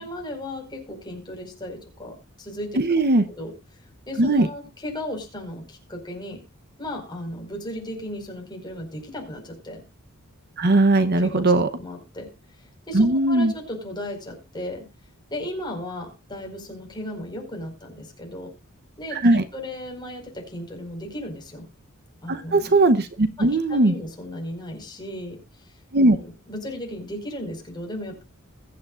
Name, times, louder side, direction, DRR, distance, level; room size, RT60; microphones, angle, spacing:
voice 1, 0.0-2.8 3.3-3.5 4.1-6.4 6.8-9.8 11.1-12.3 12.9-14.9 15.3-18.5 19.0-21.7 22.2-22.7 23.4-25.4 26.1-28.2, left 1 dB, 20° left, 1 dB, 5.0 m, -35 dB
voice 2, 2.8-3.2 4.2-4.5 10.6-11.7 12.9-13.5 19.1-19.4 22.3-23.9 25.9-26.2, right 2 dB, 50° right, 11 dB, 0.8 m, -19 dB
21.5 x 8.8 x 2.5 m, 0.27 s
head